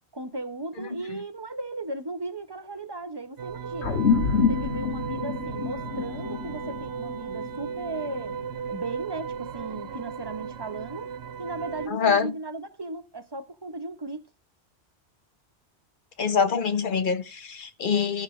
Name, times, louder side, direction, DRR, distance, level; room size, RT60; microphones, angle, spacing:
voice 1, 0.1-4.0 4.5-8.4 8.7-11.1 11.4-14.3, right 2 dB, 25° right, 0.9 m, -36 dB
sound 1, 3.4-11.9, right 7 dB, 70° right, 0.9 m, -36 dB
sound 2, 3.8-8.6, left 5 dB, 80° left, 1.7 m, -27 dB
voice 2, 11.9-12.3 16.2-18.2, left 6 dB, 50° left, 1.0 m, -24 dB
13.5 x 6.0 x 3.1 m
omnidirectional pair, 1.1 m